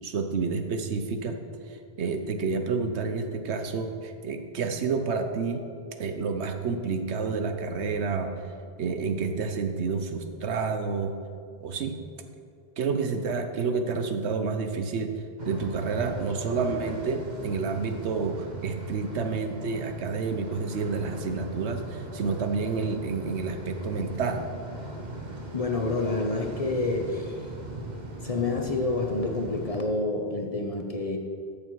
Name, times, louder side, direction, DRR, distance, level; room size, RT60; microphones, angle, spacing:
voice 1, 0.0-1.4 1.7-5.7 6.0-8.3 8.8-11.1 11.6-12.0 12.8-15.1 15.5-24.5, right 4 dB, 80° right, 6 dB, 1.1 m, -29 dB
sound 1, 15.4-29.8, right 2 dB, 40° right, 1.2 m, -39 dB
voice 2, 25.5-27.4 28.2-31.2, left 3 dB, 35° left, 2 dB, 0.8 m, -28 dB
13.5 x 6.7 x 4.7 m, 2.3 s
omnidirectional pair, 1.1 m